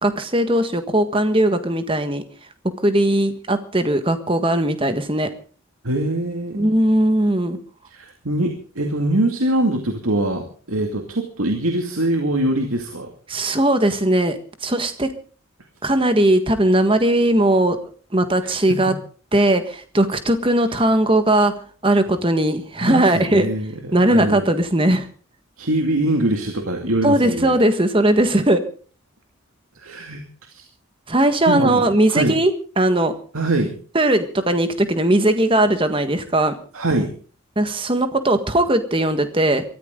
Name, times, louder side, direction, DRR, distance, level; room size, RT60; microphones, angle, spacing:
voice 1, 0.0-2.2 2.8-5.3 6.5-7.6 13.3-15.1 15.8-17.8 18.1-18.9 19.3-21.5 21.8-23.5 23.9-25.1 27.0-28.6 31.1-32.5 32.8-33.1 33.9-36.5 37.5-39.6, right 1 dB, 25° right, 9 dB, 1.6 m, -18 dB
voice 2, 5.8-6.7 7.9-13.1 18.4-18.9 22.8-24.5 25.6-27.5 29.8-30.2 30.5-30.6 31.5-32.4 33.3-33.7 36.7-37.1, right 1 dB, 90° right, 4 dB, 2.3 m, -23 dB
23.0 x 14.0 x 3.8 m, 0.41 s
head